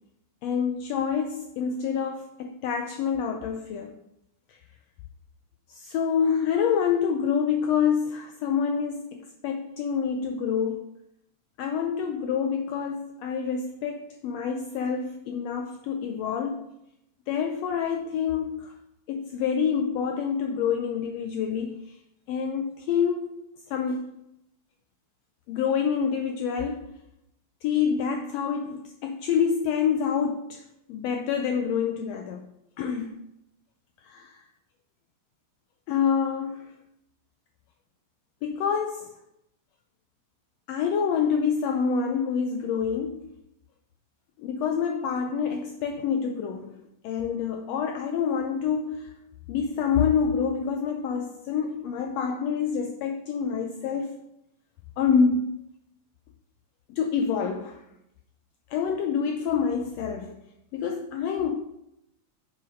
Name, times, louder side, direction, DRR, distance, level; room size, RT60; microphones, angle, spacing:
voice 1, 0.4-4.0 4.5-4.6 5.7-10.9 11.6-16.7 17.3-18.7 19.1-21.9 22.3-23.3 23.7-24.2 25.5-26.9 27.6-30.6 30.9-32.4 32.8-33.2 34.0-34.4 35.9-36.7 38.4-39.2 40.7-43.3 44.4-54.2 55.0-55.6 56.9-57.8 58.7-60.4 60.7-61.6, left 6 dB, 75° left, 5 dB, 1.6 m, -27 dB
6.9 x 6.4 x 5.1 m, 0.82 s
omnidirectional pair, 3.3 m